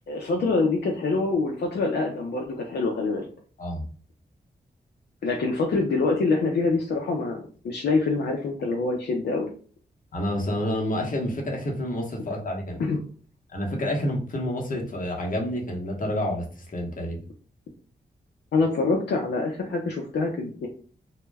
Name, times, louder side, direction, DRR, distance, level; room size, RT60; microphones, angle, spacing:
voice 1, 0.1-3.3 5.2-9.5 12.8-13.0 18.5-20.7, left 3 dB, 75° left, 1 dB, 0.5 m, -25 dB
voice 2, 10.1-12.9 13.5-17.2, left 1 dB, 50° left, 0 dB, 0.8 m, -29 dB
2.1 x 2.1 x 3.3 m, 0.41 s
cardioid pair, 70°, 17 cm